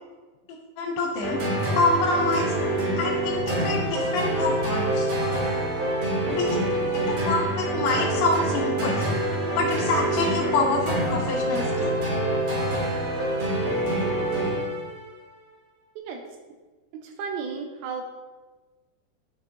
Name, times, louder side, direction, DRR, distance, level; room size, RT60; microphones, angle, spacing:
voice 1, 0.8-1.4 1.7-2.5 3.0-5.1 6.3-6.6 6.9-9.1 9.6-12.0, left 3 dB, 80° left, -2 dB, 2.8 m, -26 dB
sound 1, 1.2-15.0, right 1 dB, 60° right, 3.9 m, -26 dB
voice 2, 16.9-18.0, right 5 dB, 85° right, 3 dB, 2.9 m, -33 dB
11.5 x 6.3 x 2.6 m, 1.3 s
omnidirectional pair, 5.1 m